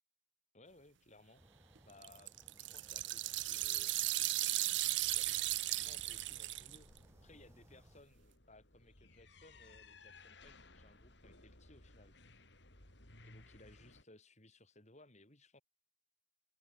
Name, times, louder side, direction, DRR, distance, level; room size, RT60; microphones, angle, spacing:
voice 1, 0.5-1.4 1.8-2.3 2.7-4.0 5.1-6.9 7.2-12.2 13.2-15.6, left 2 dB, 35° left, 7.5 m, -62 dB
sound 1, 1.3-8.0, equal, 15° right, 6.5 m, -64 dB
sound 2, 1.8-7.0, right 17 dB, 70° right, 0.8 m, -36 dB
sound 3, 4.8-14.0, left 2 dB, 65° left, 5.8 m, -60 dB
head